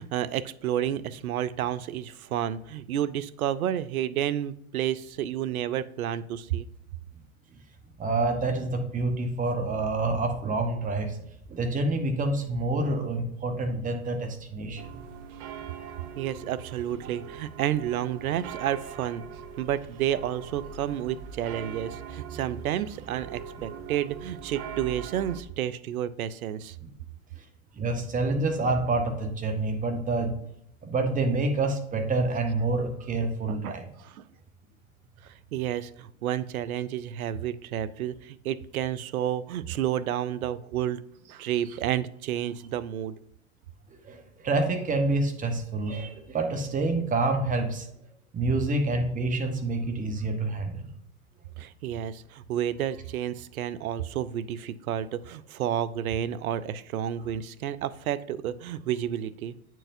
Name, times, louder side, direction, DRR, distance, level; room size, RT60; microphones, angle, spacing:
voice 1, 0.0-6.7 16.2-19.2 19.6-26.8 33.5-34.2 35.2-41.0 41.3-43.1 51.6-59.5, right 11 dB, 85° right, 16 dB, 0.5 m, -30 dB
voice 2, 8.0-11.2 11.5-14.8 27.8-30.4 30.8-33.8 44.0-47.9 48.3-50.9, right 2 dB, 20° right, 5 dB, 1.0 m, -27 dB
sound 1, 14.8-25.4, right 7 dB, 45° right, 0.8 m, -41 dB
8.7 x 4.6 x 2.6 m, 0.76 s
hypercardioid pair, 105°, 42 cm